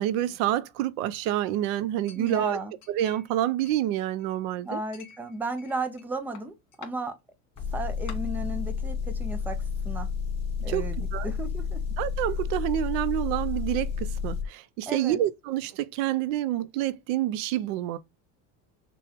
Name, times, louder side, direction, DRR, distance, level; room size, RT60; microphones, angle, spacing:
voice 1, 0.0-2.6 2.9-4.8 10.6-11.3 12.0-18.0, right 13 dB, 75° right, 0.7 m, -28 dB
Chink clink, 2.1-3.4 3.7-4.4 4.9-6.1 6.4-6.9 7.6-7.7 8.1-8.2, left 7 dB, 55° left, 2.1 m, -48 dB
voice 2, 2.2-2.7 4.6-7.1 7.7-10.1 10.6-11.8 14.9-15.2, right 2 dB, 5° right, 0.3 m, -34 dB
Motor vehicle (road) / Engine, 7.6-14.5, left 6 dB, 15° left, 1.6 m, -31 dB
6.0 x 2.3 x 3.5 m
cardioid pair, 160°, 38 cm